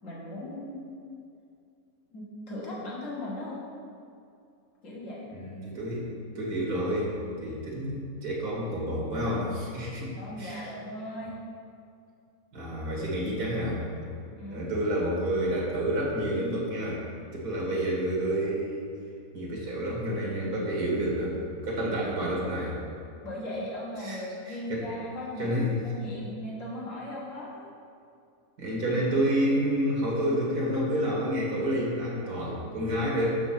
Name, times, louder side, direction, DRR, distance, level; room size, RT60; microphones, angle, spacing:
voice 1, 0.0-1.0 2.1-3.6 4.8-5.3 10.2-11.4 14.4-14.7 22.0-22.2 23.2-27.7, left 1 dB, 55° left, -5 dB, 2.1 m, -38 dB
voice 2, 5.3-6.1 6.4-10.7 12.5-13.8 14.5-17.0 17.3-18.9 19.3-22.8 24.0-24.9 25.4-25.8 28.6-33.4, equal, 80° right, -4 dB, 2.2 m, -29 dB
7.1 x 6.0 x 5.7 m, 2.4 s
omnidirectional pair, 1.6 m